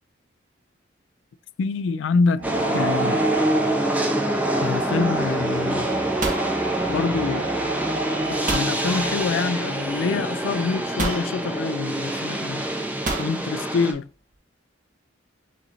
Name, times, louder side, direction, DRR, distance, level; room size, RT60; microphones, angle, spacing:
voice 1, 1.6-2.4 2.7-3.3 4.6-5.9 6.9-7.5 8.5-12.6 13.2-14.1, left 4 dB, 65° left, 0.3 m, -25 dB
sound 1, 2.3-9.5, right 2 dB, 90° right, 2.1 m, -30 dB
sound 2, 2.4-13.9, right 1 dB, 10° right, 0.7 m, -26 dB
sound 3, 6.2-7.4 8.5-8.8 9.9-10.0 11.0-11.3 13.1-13.4, right 2 dB, 40° right, 1.0 m, -28 dB
6.2 x 3.1 x 2.6 m
head